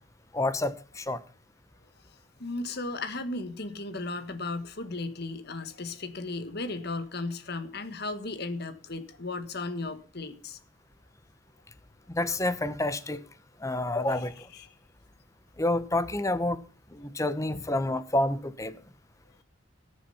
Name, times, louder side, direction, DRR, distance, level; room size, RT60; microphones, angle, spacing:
voice 1, 0.3-1.2 12.1-13.2 13.6-14.3 15.6-16.6 16.9-18.8, left 1 dB, 15° left, 0.9 m, -28 dB
voice 2, 2.4-10.6 14.1-14.7 17.5-17.6, left 2 dB, 55° left, 1.6 m, -36 dB
19.0 x 7.3 x 5.7 m
head